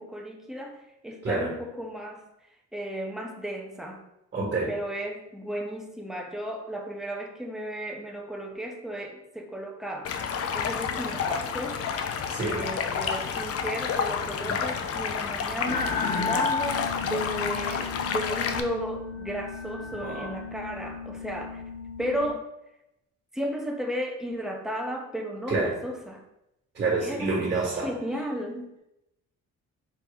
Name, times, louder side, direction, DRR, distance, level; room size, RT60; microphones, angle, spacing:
voice 1, 0.0-2.2 2.7-4.0 4.7-10.1 10.5-11.8 12.4-21.6 22.0-22.4 23.3-26.2 27.0-27.3 27.8-28.8, equal, ahead, 1 dB, 0.8 m, -34 dB
voice 2, 4.3-4.7 12.3-12.6 14.5-14.6 20.0-20.3 25.5-25.7 26.7-27.9, right 3 dB, 35° right, -4 dB, 1.6 m, -28 dB
Stream, 10.0-18.6, left 6 dB, 50° left, 0.5 m, -30 dB
sound 1, 15.7-22.3, left 4 dB, 90° left, 0.7 m, -33 dB
4.4 x 3.0 x 3.5 m, 0.87 s
cardioid pair, 90°, 30 cm